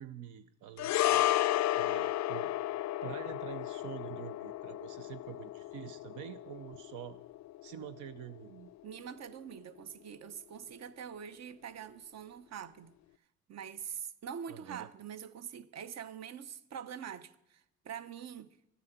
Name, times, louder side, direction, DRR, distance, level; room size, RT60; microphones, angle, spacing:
voice 1, 0.0-2.5 3.0-7.2 7.6-8.7 14.5-14.9, right 10 dB, 90° right, 0.7 m, -46 dB
sound 1, 0.8-9.3 9.5-9.7, left 14 dB, 65° left, 0.4 m, -33 dB
voice 2, 8.8-12.9 13.5-18.5, right 8 dB, 60° right, 0.9 m, -44 dB
13.5 x 9.6 x 7.9 m
cardioid pair, 90°, 30 cm